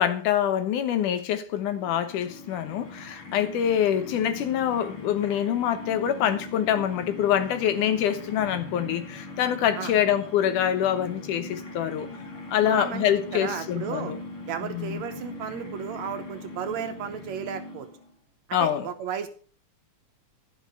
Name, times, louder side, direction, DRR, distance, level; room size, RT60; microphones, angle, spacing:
voice 1, 0.0-12.1 12.5-14.2 14.6-15.0 18.5-18.8, left 10 dB, 80° left, 2.6 m, -25 dB
sound 1, 1.5-18.1, left 2 dB, 45° left, 3.0 m, -40 dB
voice 2, 12.6-13.1 13.3-14.1 14.5-17.9 18.5-19.3, right 8 dB, 70° right, 2.1 m, -34 dB
12.0 x 6.5 x 6.6 m
omnidirectional pair, 3.6 m